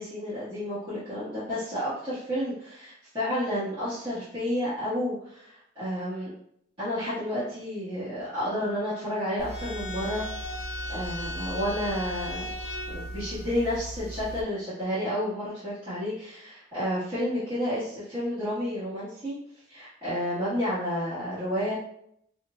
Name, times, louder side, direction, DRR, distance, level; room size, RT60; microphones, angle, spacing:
voice 1, 0.0-6.3 6.8-12.5 12.9-19.3 19.7-21.7, equal, 25° right, -13 dB, 1.4 m, -31 dB
sound 1, 9.4-14.4, equal, 55° left, 0.8 m, -36 dB
5.6 x 2.6 x 2.2 m, 0.72 s
head